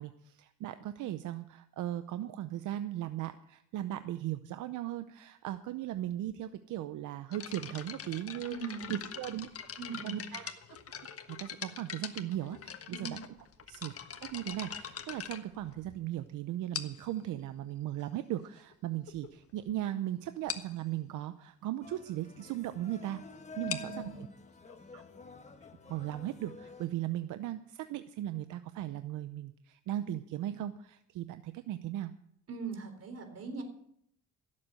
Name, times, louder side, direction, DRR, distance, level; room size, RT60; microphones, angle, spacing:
voice 1, 0.0-8.6 8.9-9.5 10.0-10.5 11.4-13.2 13.7-13.9 14.2-23.2 23.6-24.3 24.9-25.0 25.9-32.1, right 13 dB, 85° right, 11 dB, 0.7 m, -37 dB
sound 1, 7.3-16.1 16.7-17.2 18.0-18.1 18.7-18.8 19.1-19.3 19.6-19.7 20.0-20.1 20.5-20.8 23.5-26.9, left 7 dB, 50° left, 1.4 m, -43 dB
voice 2, 8.4-9.0 9.3-9.4 9.8-10.2 12.9-13.2 23.6-24.2 32.5-33.6, right 5 dB, 55° right, 6 dB, 3.8 m, -41 dB
sound 2, 21.8-26.9, left 3 dB, 25° left, 1.3 m, -49 dB
16.5 x 7.7 x 7.7 m, 0.72 s
cardioid pair, 90°, 30 cm